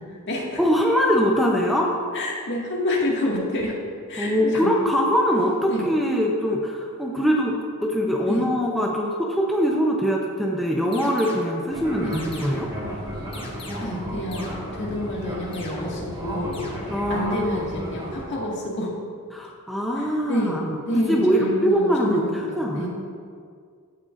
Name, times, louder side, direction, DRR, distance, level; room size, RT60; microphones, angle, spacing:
voice 1, 0.0-0.6 2.1-3.8 4.1-4.7 5.7-5.9 8.3-8.4 12.0-12.2 13.8-16.6 17.1-18.9 20.0-20.6 20.9-22.9, left 1 dB, 55° left, -3 dB, 1.9 m, -28 dB
voice 2, 0.6-1.9 4.2-7.6 7.8-12.7 16.9-18.1 19.3-22.9, equal, ahead, -3 dB, 0.7 m, -23 dB
sound 1, 10.9-11.6 12.1-12.8 13.3-14.1 14.3-15.0 15.5-16.2 16.5-17.2, left 2 dB, 25° left, 1.2 m, -41 dB
Fixed-wing aircraft airplane, 11.7-18.2, equal, 20° right, 1.7 m, -34 dB
15.5 x 6.6 x 2.5 m, 2.1 s
head